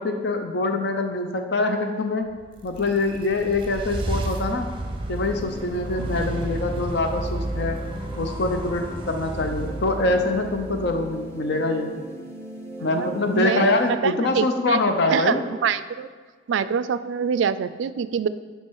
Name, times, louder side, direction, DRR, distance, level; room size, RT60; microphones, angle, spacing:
voice 1, 0.0-2.3 2.6-4.7 5.1-7.8 8.2-11.9 12.8-15.4, left 2 dB, 60° left, 5 dB, 0.6 m, -24 dB
sound 1, 2.4-11.6, right 1 dB, 25° right, 0.7 m, -32 dB
sound 2, 5.2-13.9, equal, 15° left, 0.8 m, -40 dB
voice 2, 12.8-14.8 15.1-15.4 15.6-16.1 16.5-18.3, right 7 dB, 70° right, 15 dB, 0.3 m, -25 dB
7.3 x 5.6 x 4.7 m, 1.5 s
head